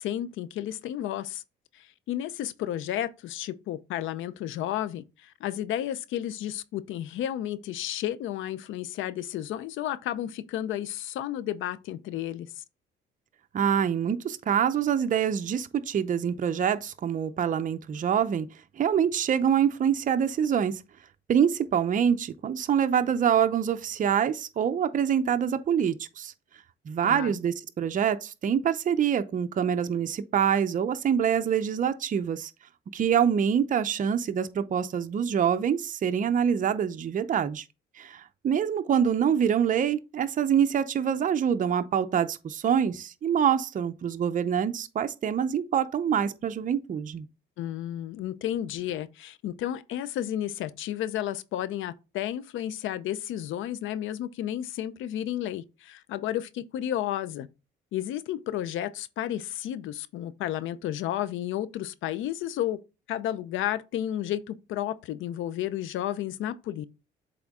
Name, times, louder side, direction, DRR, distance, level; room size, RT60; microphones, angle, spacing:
voice 1, 0.0-1.4 1.7-12.6 27.0-27.4 47.6-57.5 57.9-62.8 63.1-66.8, left 12 dB, 85° left, 0.6 m, -32 dB
voice 2, 13.5-18.5 18.8-20.8 21.3-26.3 26.9-32.5 32.9-37.6 38.0-47.3, right 8 dB, 40° right, 0.6 m, -25 dB
7.6 x 3.6 x 3.6 m
cardioid pair, 90°, 20 cm